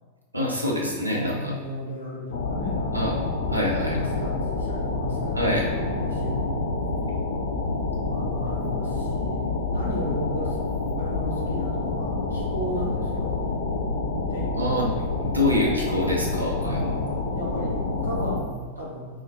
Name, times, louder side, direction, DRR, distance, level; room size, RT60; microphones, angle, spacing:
voice 1, 0.3-1.5 2.9-3.2 3.5-4.0 5.3-5.7 14.5-14.9 15.2-16.9, left 1 dB, 85° right, -3 dB, 0.6 m, -25 dB
voice 2, 1.1-3.2 3.6-6.6 8.0-9.4 9.7-10.6 10.8-13.5 14.3-14.9 16.6-19.1, equal, 85° left, -6 dB, 0.8 m, -34 dB
sound 1, 2.3-18.4, left 3 dB, 60° left, 0.3 m, -28 dB
2.3 x 2.1 x 3.9 m, 1.5 s
figure-of-eight pair, 90°, 0 cm